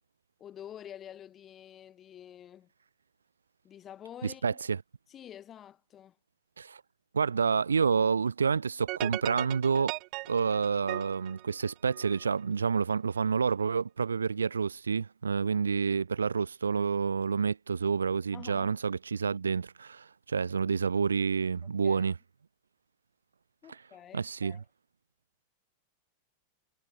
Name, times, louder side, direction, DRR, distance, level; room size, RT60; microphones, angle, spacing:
voice 1, 0.4-2.7 3.6-4.5 5.1-6.1 18.3-18.8 21.8-22.1 23.6-24.6, left 10 dB, 25° left, 1.4 m, -48 dB
voice 2, 4.2-4.8 6.6-6.8 7.1-9.9 10.3-22.1 24.1-24.6, right 5 dB, 75° right, 0.4 m, -29 dB
sound 1, 8.9-12.3, right 27 dB, 40° right, 0.9 m, -38 dB
figure-of-eight pair, 90°, 0 cm